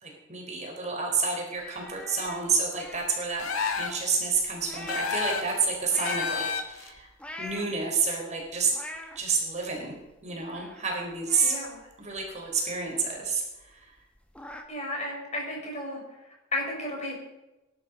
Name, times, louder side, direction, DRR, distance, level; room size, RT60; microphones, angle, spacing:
voice 1, 0.0-3.5 3.7-7.1 7.4-8.7 9.2-9.9 10.2-11.5 12.0-13.4, right 4 dB, 35° right, 0 dB, 4.2 m, -29 dB
sound 1, 1.5-4.1 4.4-5.3 5.8-6.4 7.0-8.0 8.4-9.2 9.7-9.8 10.0-10.9 11.3-12.8 13.1-13.2 13.6-13.7 14.0-14.6, left 1 dB, 5° left, 1.7 m, -43 dB
sound 2, 3.4-4.1 4.9-5.6 6.0-6.9, left 5 dB, 80° left, 1.8 m, -30 dB
voice 2, 11.4-11.8 14.7-16.0 16.5-17.1, left 1 dB, 30° left, 0 dB, 5.6 m, -33 dB
21.0 x 11.5 x 5.3 m, 1.0 s
head